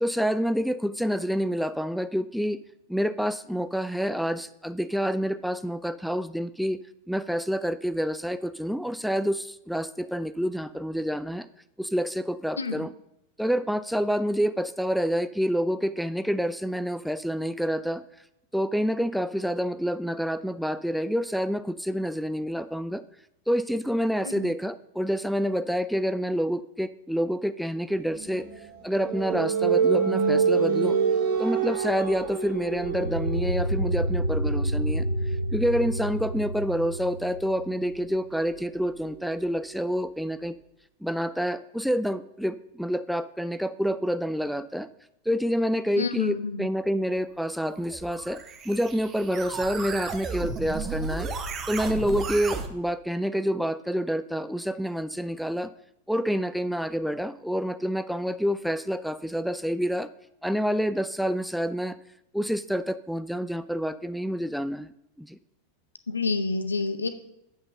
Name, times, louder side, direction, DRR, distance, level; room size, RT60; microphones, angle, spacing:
voice 1, 0.0-2.6 2.9-6.8 7.1-11.5 11.8-12.9 13.4-18.0 18.5-23.0 23.5-28.5 28.8-31.0 31.4-35.0 35.5-40.6 41.0-44.9 45.3-51.3 51.7-55.7 56.1-60.1 60.4-62.0 62.3-64.9 65.2-65.4, equal, ahead, 13 dB, 0.3 m, -28 dB
sound 1, 28.1-39.6, right 6 dB, 55° right, 1.9 m, -29 dB
sound 2, 32.7-38.0, right 1 dB, 85° right, 0.3 m, -29 dB
voice 2, 46.0-46.7 66.1-67.1, left 4 dB, 75° left, 11 dB, 0.8 m, -28 dB
sound 3, 47.7-52.7, right 4 dB, 25° right, 0.9 m, -34 dB
7.9 x 5.8 x 6.5 m, 0.80 s
figure-of-eight pair, 90°, 0 cm